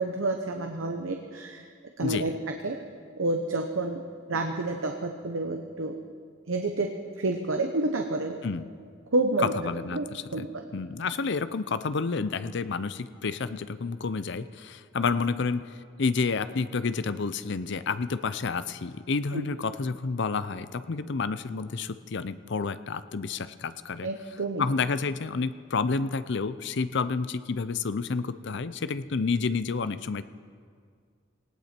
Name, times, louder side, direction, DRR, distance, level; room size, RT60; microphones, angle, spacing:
voice 1, 0.0-1.6 2.0-2.3 2.6-2.8 3.2-4.0 4.3-6.0 6.5-8.4 9.1-9.5 9.9-10.1 10.3-10.6 19.3-19.4 24.0-24.6, right 2 dB, 80° right, 4 dB, 1.0 m, -29 dB
voice 2, 9.4-10.4 10.7-15.6 16.0-24.1 24.6-30.2, left 4 dB, 60° left, 14 dB, 0.6 m, -29 dB
18.5 x 17.0 x 4.4 m, 2.1 s
head